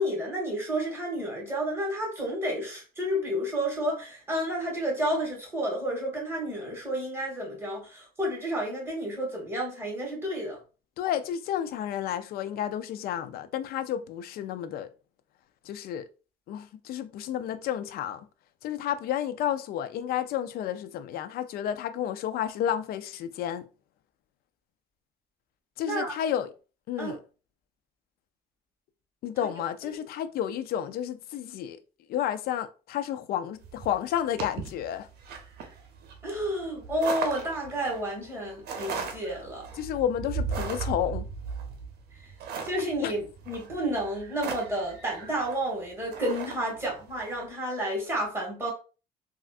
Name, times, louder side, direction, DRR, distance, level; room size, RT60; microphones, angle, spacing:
voice 1, 0.0-10.6 25.9-26.1 27.0-27.1 29.4-29.5 29.8-30.0 36.2-39.7 42.6-48.7, equal, 15° right, 1.7 m, -31 dB
voice 2, 11.0-14.9 15.7-16.0 16.5-18.2 18.6-23.7 25.8-26.5 26.9-27.2 29.2-31.8 32.1-35.1 39.8-41.3 43.0-43.1, left 10 dB, 65° left, 0.4 m, -31 dB
sound 1, 33.6-47.4, right 5 dB, 70° right, 0.7 m, -37 dB
3.3 x 2.4 x 2.4 m
cardioid pair, 110°, 17 cm